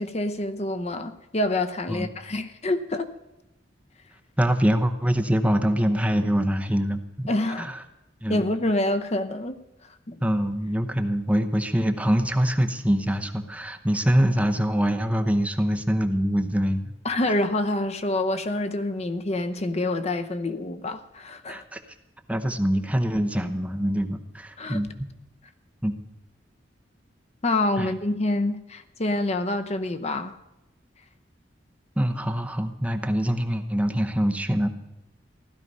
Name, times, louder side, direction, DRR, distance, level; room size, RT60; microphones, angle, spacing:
voice 1, 0.0-3.1 7.3-7.7 8.3-9.6 10.1-10.2 17.0-21.6 24.6-24.8 27.4-30.3, left 2 dB, 35° left, 0.8 m, -27 dB
voice 2, 4.4-7.3 7.6-7.8 8.2-8.4 10.2-16.9 21.5-21.8 22.3-25.1 25.8-26.0 27.8-27.9 32.0-34.7, equal, 5° right, 0.9 m, -24 dB
15.5 x 12.5 x 5.4 m
head